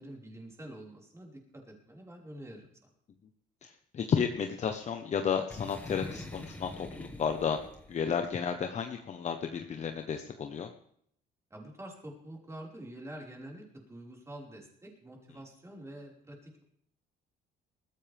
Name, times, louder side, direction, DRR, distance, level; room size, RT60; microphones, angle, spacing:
voice 1, 0.0-2.7 11.5-16.6, right 1 dB, 15° right, -1 dB, 5.3 m, -47 dB
voice 2, 3.6-7.6 7.9-10.7, left 7 dB, 45° left, 6 dB, 1.2 m, -32 dB
Boom, 5.5-8.2, left 1 dB, 10° left, 1.8 m, -45 dB
20.0 x 15.0 x 3.6 m, 0.67 s
cardioid pair, 110°, 17 cm